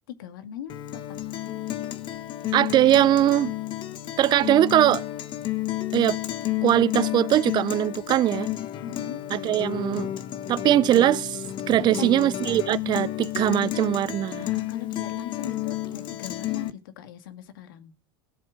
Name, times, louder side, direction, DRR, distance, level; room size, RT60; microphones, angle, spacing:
voice 1, 0.1-1.0 8.8-9.2 12.0-12.1 14.4-17.9, left 9 dB, 75° left, 2.1 m, -39 dB
Guitar, 0.7-16.7, left 14 dB, 45° left, 1.3 m, -31 dB
voice 2, 2.5-3.5 4.2-5.0 5.9-6.2 6.6-8.5 9.3-10.1 10.5-14.4, right 12 dB, 40° right, 0.7 m, -21 dB
17.5 x 7.8 x 5.0 m
hypercardioid pair, 95°, 12 cm